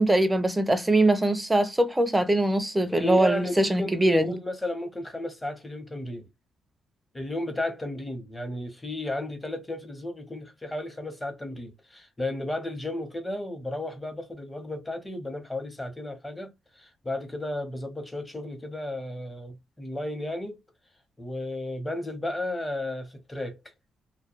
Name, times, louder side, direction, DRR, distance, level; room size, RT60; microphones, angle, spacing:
voice 1, 0.0-4.3, right 1 dB, 10° right, 0.5 m, -22 dB
voice 2, 2.9-6.3 7.1-16.5 16.8-20.6 21.2-23.6, left 1 dB, 15° left, 0.8 m, -33 dB
2.2 x 2.2 x 2.9 m
cardioid pair, 90°, 0 cm